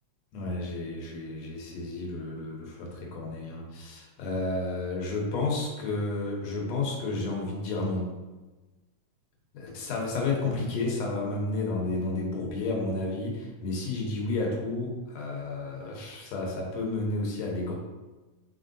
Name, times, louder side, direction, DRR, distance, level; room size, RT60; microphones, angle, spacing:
voice 1, 0.3-8.2 9.5-17.7, left 2 dB, 70° left, -1 dB, 2.0 m, -31 dB
4.4 x 4.3 x 2.6 m, 1.2 s
omnidirectional pair, 3.3 m